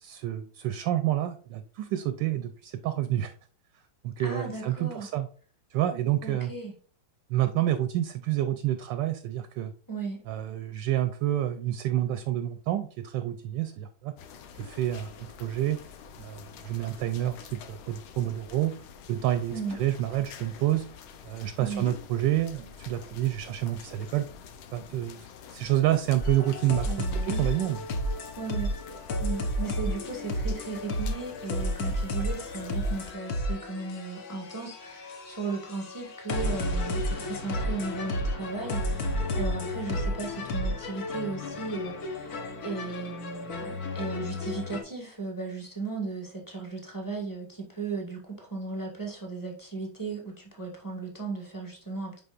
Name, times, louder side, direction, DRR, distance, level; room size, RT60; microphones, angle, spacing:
voice 1, 0.0-3.3 4.0-5.3 5.7-6.5 7.3-9.7 10.3-14.1 14.5-15.8 16.2-18.7 19.1-20.8 21.2-24.3 24.7-27.8, right 13 dB, 75° right, 1.1 m, -28 dB
voice 2, 4.2-5.1 6.2-6.7 9.9-10.2 19.5-19.8 21.6-21.9 26.9-27.4 28.4-28.7 29.2-42.4 42.6-52.2, right 4 dB, 10° left, 1.3 m, -36 dB
sound 1, 14.2-33.1, left 7 dB, 85° left, 1.6 m, -47 dB
sound 2, 26.2-44.8, left 1 dB, 55° left, 1.2 m, -32 dB
10.5 x 3.9 x 2.5 m
omnidirectional pair, 2.2 m